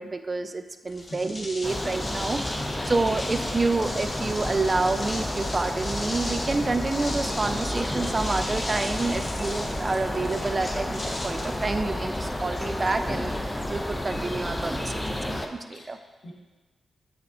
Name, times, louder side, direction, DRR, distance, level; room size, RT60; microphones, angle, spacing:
voice 1, 0.0-2.4 2.9-16.0, right 3 dB, 40° right, 9 dB, 0.3 m, -28 dB
sound 1, 0.9-12.3, left 1 dB, 35° left, 1.0 m, -38 dB
voice 2, 1.0-1.3 2.5-2.9 3.3-3.4 15.7-16.3, left 1 dB, 60° left, -2 dB, 1.0 m, -42 dB
sound 2, 1.6-15.5, left 1 dB, 15° left, 0.5 m, -31 dB
5.6 x 3.3 x 2.6 m, 1.3 s
supercardioid pair, 40°, 0 cm